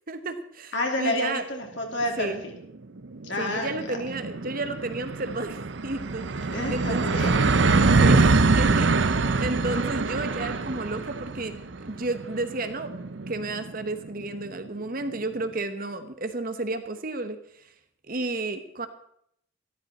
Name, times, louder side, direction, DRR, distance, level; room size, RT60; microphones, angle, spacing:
voice 1, 0.1-0.7 1.0-1.4 2.2-2.4 3.4-6.3 6.7-7.2 8.0-11.6 11.8-12.9 13.3-17.4 18.1-18.9, right 2 dB, 45° right, 9 dB, 1.1 m, -32 dB
voice 2, 0.7-2.5 3.2-4.0 6.5-8.2, left 1 dB, 65° left, 1 dB, 2.8 m, -30 dB
sound 1, 2.2-2.3 2.6-2.7 3.0-14.4, right 3 dB, 65° right, 0.6 m, -24 dB
14.0 x 13.0 x 4.2 m, 0.70 s
head